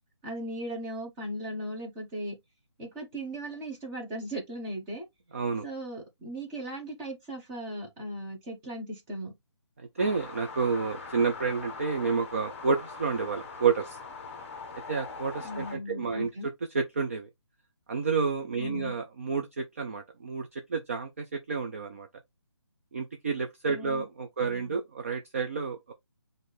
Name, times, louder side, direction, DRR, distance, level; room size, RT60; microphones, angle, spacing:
voice 1, 0.2-2.3 2.8-5.0 5.6-9.3 15.4-16.5 18.6-18.9 23.7-24.0 24.4-24.8, right 1 dB, 10° right, 0.8 m, -37 dB
voice 2, 5.3-5.7 10.0-14.0 14.9-17.3 17.9-22.1 22.9-25.9, right 5 dB, 30° right, 0.4 m, -30 dB
sound 1, 10.0-15.8, left 4 dB, 25° left, 0.7 m, -42 dB
6.1 x 2.6 x 3.3 m
hypercardioid pair, 170°, 15 cm